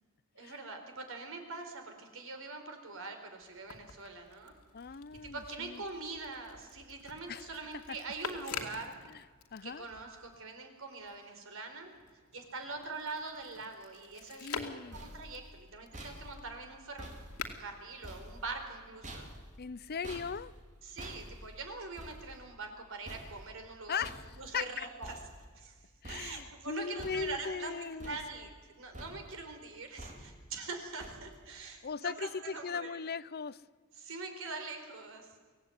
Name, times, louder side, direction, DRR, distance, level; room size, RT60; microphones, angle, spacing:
voice 1, 0.3-4.5 5.2-9.0 9.6-11.9 12.3-14.5 14.9-17.1 17.6-19.3 20.8-24.1 24.4-25.1 25.6-25.8 26.1-27.7 28.1-33.0 34.0-35.5, right 3 dB, 65° right, 5 dB, 4.4 m, -43 dB
sound 1, 3.4-10.4 10.8-18.9 19.8-20.5, left 5 dB, 85° left, 2.5 m, -48 dB
voice 2, 4.7-5.8 7.3-7.5 7.9-8.0 9.1-9.2 9.5-9.9 14.4-15.0 19.6-20.5 23.9-24.2 24.5-24.9 26.0-28.2 31.8-33.6, left 6 dB, 45° left, 15 dB, 0.6 m, -38 dB
sound 2, 14.5-25.8 26.0-26.6 27.0-27.6 28.0-28.7 28.9-29.5 30.0-30.5 31.0-31.5, right 1 dB, 35° right, 4.4 m, -49 dB
24.5 x 17.0 x 9.4 m, 1.5 s
head